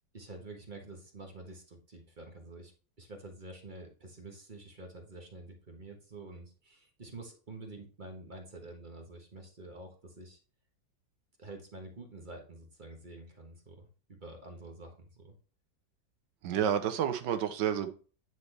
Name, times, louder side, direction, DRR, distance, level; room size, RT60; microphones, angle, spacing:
voice 1, 0.1-2.7 3.0-10.4 11.4-15.3, right 2 dB, 30° right, 1.3 m, -48 dB
voice 2, 16.4-17.9, right 9 dB, 75° right, 1.4 m, -30 dB
9.3 x 4.1 x 3.3 m
omnidirectional pair, 1.9 m